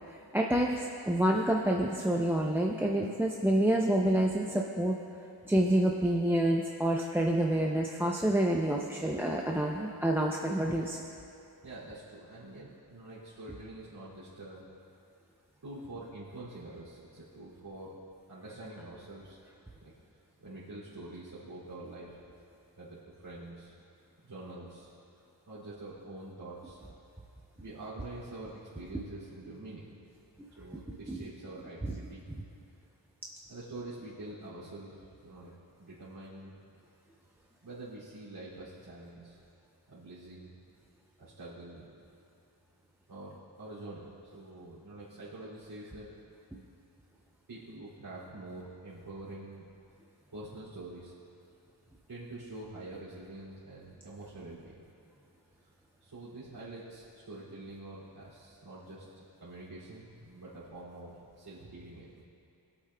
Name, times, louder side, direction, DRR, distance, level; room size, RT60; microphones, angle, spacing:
voice 1, 0.3-5.0 5.5-11.0 30.4-30.5 31.1-31.2 31.8-32.0, right 1 dB, 5° right, 0 dB, 0.5 m, -28 dB
voice 2, 11.6-14.7 15.6-17.9 18.3-19.4 19.8-19.9 20.4-22.3 22.8-23.7 24.2-24.9 25.4-26.8 27.6-29.9 30.6-32.2 33.5-35.5 35.8-36.5 37.6-39.4 39.9-40.5 41.2-41.8 43.1-44.0 44.3-46.1 47.5-49.7 50.3-51.1 52.1-54.8 55.6-55.7 56.0-59.1 59.4-62.2, right 2 dB, 60° right, -11 dB, 2.6 m, -46 dB
21.5 x 8.4 x 2.2 m, 2.5 s
wide cardioid pair, 120°, 43 cm